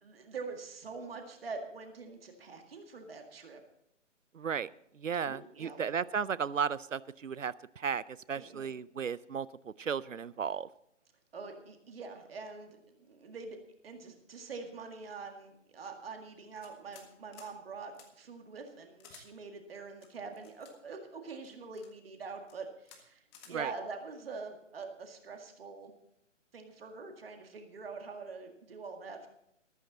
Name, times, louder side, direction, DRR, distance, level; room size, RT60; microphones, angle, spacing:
voice 1, 0.0-3.6 5.2-5.9 8.3-8.7 11.3-13.6 13.8-23.2 23.5-25.9 26.5-29.3, right 4 dB, 50° right, 4 dB, 2.0 m, -44 dB
voice 2, 4.3-4.7 4.9-8.0 8.3-10.7 23.5-23.7, right 7 dB, 85° right, 20 dB, 0.6 m, -35 dB
sound 1, 16.6-17.1 17.3-17.5 17.9-18.1 19.0-19.3 20.0-20.7 21.4-21.9 22.4-22.6 22.9-23.0 23.3-23.5, left 7 dB, 20° left, 1.6 m, -55 dB
13.5 x 13.5 x 4.0 m, 0.77 s
figure-of-eight pair, 140°, 38 cm